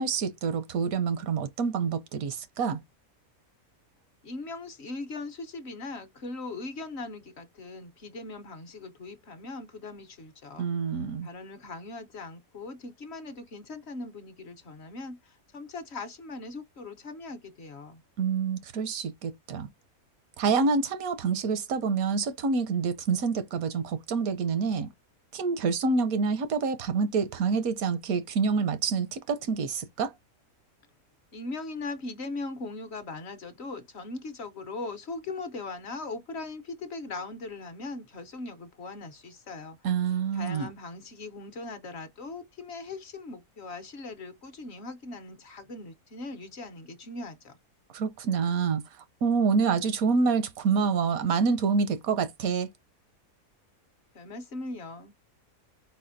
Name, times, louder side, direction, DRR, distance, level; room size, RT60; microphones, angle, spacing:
voice 1, 0.0-2.8 10.6-11.3 18.2-19.7 20.4-24.9 25.3-30.1 39.8-40.7 47.9-48.8 49.2-52.7, right 5 dB, 80° right, 1.1 m, -27 dB
voice 2, 4.2-10.7 11.2-18.0 31.3-39.8 40.1-47.6 54.1-55.1, left 3 dB, 55° left, 0.9 m, -40 dB
4.2 x 4.1 x 2.5 m
omnidirectional pair, 1.5 m